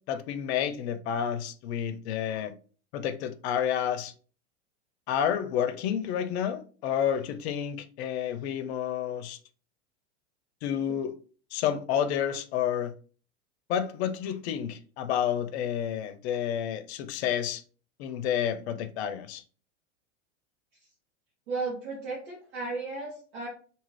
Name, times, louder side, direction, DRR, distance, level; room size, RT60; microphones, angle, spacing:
voice 1, 0.1-2.5 2.9-4.1 5.1-9.4 10.6-11.1 11.5-12.9 13.7-17.6 18.0-19.4, left 9 dB, 65° left, 0.5 m, -30 dB
voice 2, 21.5-23.5, right 3 dB, 70° right, 1.2 m, -34 dB
2.7 x 2.4 x 3.1 m
hypercardioid pair, 110°, 36 cm